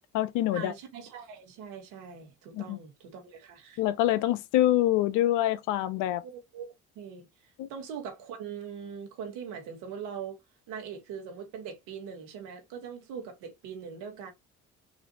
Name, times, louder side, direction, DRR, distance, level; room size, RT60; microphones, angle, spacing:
voice 1, 0.0-0.7 2.5-2.8 3.8-6.2 7.6-7.7, left 13 dB, 75° left, 0.5 m, -26 dB
voice 2, 0.5-3.8 6.2-7.3 7.7-10.4 10.7-14.3, right 7 dB, 80° right, 1.3 m, -41 dB
4.1 x 2.5 x 2.7 m
hypercardioid pair, 60°, 32 cm